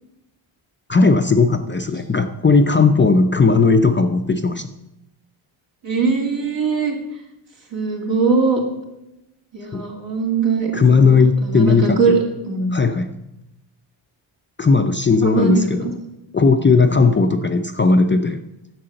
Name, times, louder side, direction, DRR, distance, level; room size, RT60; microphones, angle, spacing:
voice 1, 0.9-4.7 9.7-9.8 10.7-12.0 12.7-13.2 14.6-15.9 16.3-18.4, left 4 dB, 25° left, 7 dB, 0.5 m, -16 dB
voice 2, 5.8-7.0 7.7-8.6 9.5-12.2 12.5-12.7 15.2-15.9, right 4 dB, 65° right, 0 dB, 3.1 m, -21 dB
11.0 x 6.8 x 7.7 m, 0.90 s
wide cardioid pair, 145°, 49 cm